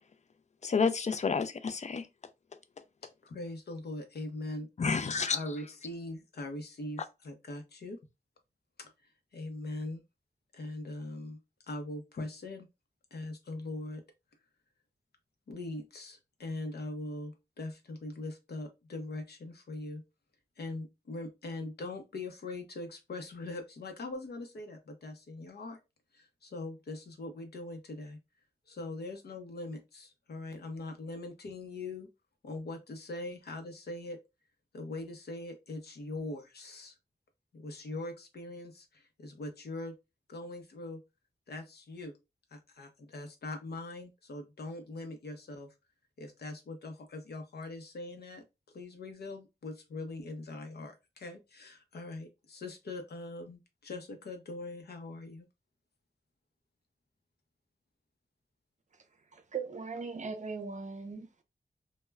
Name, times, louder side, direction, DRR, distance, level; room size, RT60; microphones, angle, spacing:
voice 1, 0.6-2.1 4.8-5.4, left 5 dB, 45° left, 0.4 m, -29 dB
voice 2, 3.2-4.7 5.3-8.0 8.8-8.9 9.3-10.0 10.5-11.4 11.7-12.7 13.1-14.0 15.5-20.0 20.6-25.8 26.1-28.2 28.7-32.1 32.4-34.2 34.7-36.9 37.5-40.0 40.3-41.0 41.5-42.1 42.5-45.7 46.2-48.4 48.7-55.5, left 2 dB, 90° left, 0.6 m, -41 dB
voice 3, 59.3-61.4, right 5 dB, 50° right, 0.5 m, -39 dB
2.1 x 2.1 x 3.3 m
wide cardioid pair, 80°, 16 cm